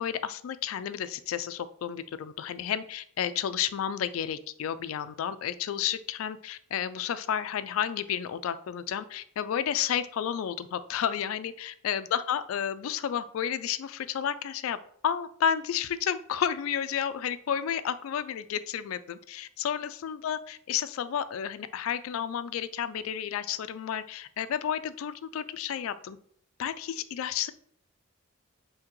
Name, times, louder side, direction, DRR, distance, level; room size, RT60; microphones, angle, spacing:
voice 1, 0.0-14.8 15.0-26.2 26.6-27.5, left 9 dB, 85° left, 14 dB, 0.3 m, -31 dB
5.8 x 2.8 x 3.0 m, 0.62 s
head